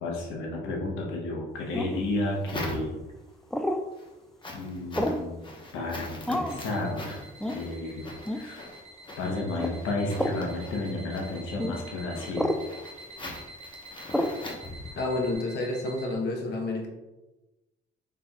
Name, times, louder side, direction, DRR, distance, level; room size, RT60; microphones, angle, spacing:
voice 1, 0.0-3.0 4.5-5.5 5.7-8.7 9.2-12.5, left 2 dB, 90° left, 0 dB, 1.0 m, -32 dB
sound 1, 1.7-2.1 3.5-3.8 5.0-5.3 6.3-6.6 7.4-7.6 8.3-8.5 9.6-9.8 10.1-10.4 11.6-11.8 12.3-12.6 14.1-14.4, equal, ahead, 0.3 m, -29 dB
sound 2, 1.9-3.3 3.8-15.3, left 1 dB, 25° left, 1.0 m, -42 dB
sound 3, 6.5-16.1, right 1 dB, 65° right, 0.6 m, -48 dB
voice 2, 15.0-16.9, left 2 dB, 60° left, 1 dB, 0.9 m, -29 dB
5.4 x 4.0 x 2.3 m, 1.1 s
cardioid pair, 90°, 20 cm